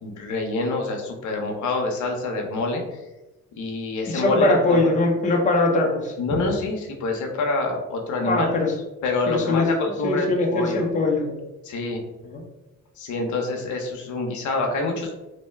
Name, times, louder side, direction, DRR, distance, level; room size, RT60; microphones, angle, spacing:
voice 1, 0.0-3.0 3.6-4.9 6.2-8.5 9.0-10.9 11.6-12.0 13.0-15.3, left 3 dB, 75° left, 2 dB, 0.7 m, -27 dB
voice 2, 4.1-6.1 8.3-8.7 9.3-9.7 10.0-11.4 12.2-12.4, left 2 dB, 25° left, 0 dB, 0.6 m, -21 dB
2.7 x 2.1 x 3.2 m, 1.0 s
cardioid pair, 90°, 30 cm